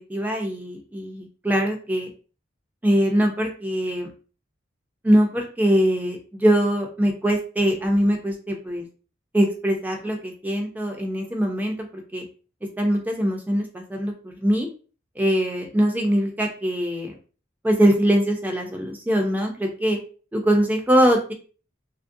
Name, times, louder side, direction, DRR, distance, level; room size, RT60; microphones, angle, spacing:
voice 1, 0.1-2.1 2.8-4.1 5.0-8.8 9.3-12.2 12.8-14.7 15.2-17.1 17.6-20.0 20.3-21.3, equal, 10° right, 2 dB, 0.4 m, -22 dB
2.9 x 2.5 x 2.5 m, 0.37 s
head